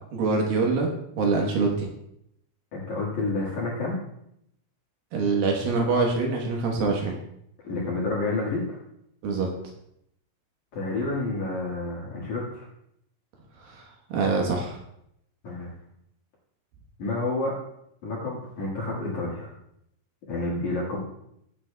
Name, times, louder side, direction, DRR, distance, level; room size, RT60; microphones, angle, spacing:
voice 1, 0.1-1.9 5.1-7.2 9.2-9.5 13.6-13.8 14.1-14.8, right 4 dB, 70° right, 1 dB, 2.3 m, -25 dB
voice 2, 2.7-4.0 7.6-8.8 10.7-12.7 15.4-15.7 17.0-17.6 18.0-19.5 20.3-21.0, left 2 dB, 55° left, -5 dB, 2.2 m, -29 dB
18.0 x 8.4 x 2.2 m, 0.77 s
omnidirectional pair, 5.5 m